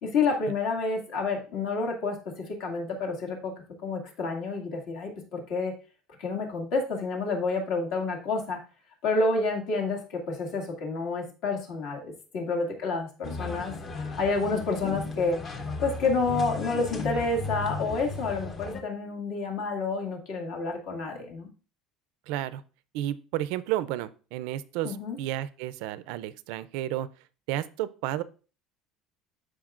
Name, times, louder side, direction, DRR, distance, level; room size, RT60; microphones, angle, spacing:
voice 1, 0.0-3.5 3.8-5.7 6.2-8.6 9.0-13.7 14.2-15.4 15.8-21.5 24.8-25.2, left 3 dB, 60° left, 1 dB, 2.1 m, -29 dB
sound 1, 13.2-18.8, left 3 dB, 25° left, 0.8 m, -35 dB
voice 2, 22.3-22.6 22.9-27.1 27.5-28.2, right 13 dB, 75° right, 16 dB, 0.4 m, -32 dB
13.0 x 4.9 x 2.5 m, 0.36 s
cardioid pair, 160°, 0 cm